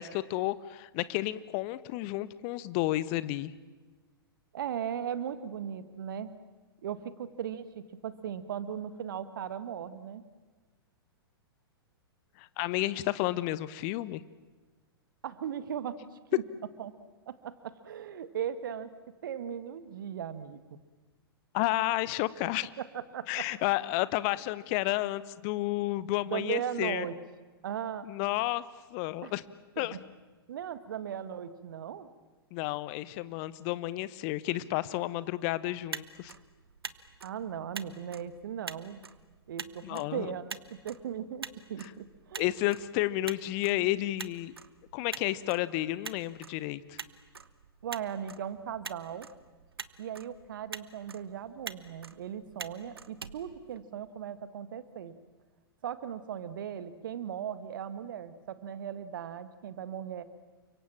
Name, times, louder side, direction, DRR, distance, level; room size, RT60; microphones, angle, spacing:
voice 1, 0.0-3.5 12.4-14.2 21.5-22.7 23.3-27.1 28.0-28.6 28.9-29.4 29.8-30.0 32.5-36.3 39.8-40.3 42.4-44.5 44.9-47.0, left 17 dB, 35° left, 17 dB, 1.0 m, -31 dB
voice 2, 4.5-6.3 6.8-10.2 15.2-15.9 16.3-16.4 16.8-16.9 17.3-18.9 19.2-20.8 22.8-23.5 26.3-27.2 27.6-28.1 29.2-29.3 29.8-30.0 30.5-32.1 37.2-39.0 39.5-42.5 47.8-49.3 50.0-55.1 55.8-60.2, right 9 dB, 55° right, 13 dB, 1.7 m, -38 dB
Motor vehicle (road), 35.7-54.3, right 5 dB, 75° right, 1.1 m, -46 dB
29.5 x 25.0 x 7.5 m, 1.3 s
figure-of-eight pair, 105°, 13 cm